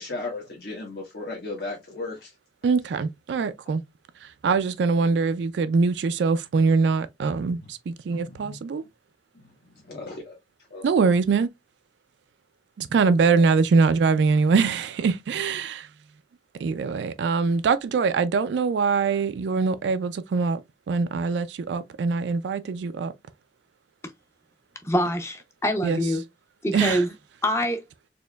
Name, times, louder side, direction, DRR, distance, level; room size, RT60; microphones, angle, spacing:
voice 1, 0.0-2.4 7.6-7.7 8.1-8.6 9.4-10.4 10.7-10.9 13.3-13.6, left 3 dB, 65° left, 1.2 m, -36 dB
voice 2, 2.6-3.8 4.4-8.8 10.8-11.5 12.8-15.9 16.6-20.6 20.9-23.1 25.8-26.0 26.7-27.0, right 4 dB, 80° right, 0.3 m, -23 dB
voice 3, 24.8-26.2 26.6-27.1 27.4-27.8, equal, 15° left, 0.5 m, -25 dB
4.3 x 2.9 x 2.2 m
head